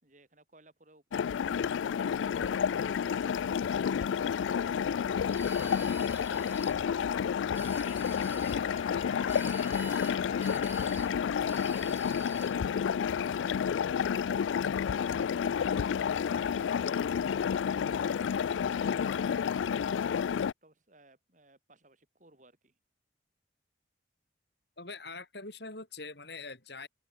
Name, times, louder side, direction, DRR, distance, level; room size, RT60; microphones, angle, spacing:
voice 1, 0.0-3.3 3.8-4.7 5.0-7.0 7.4-8.8 9.3-12.2 12.8-14.4 15.0-19.0 19.5-22.8, right 2 dB, 40° right, 4.9 m, -61 dB
sound 1, 1.1-20.5, left 7 dB, 85° left, 0.3 m, -30 dB
sound 2, 5.3-6.8 7.4-8.6 9.3-10.2 10.4-11.1 11.5-12.6, right 3 dB, 10° right, 3.7 m, -48 dB
Wind instrument woodwind instrument, 7.5-11.8 12.3-12.4, left 6 dB, 35° left, 1.4 m, -47 dB
voice 2, 24.8-26.9, left 3 dB, 60° left, 6.0 m, -43 dB
head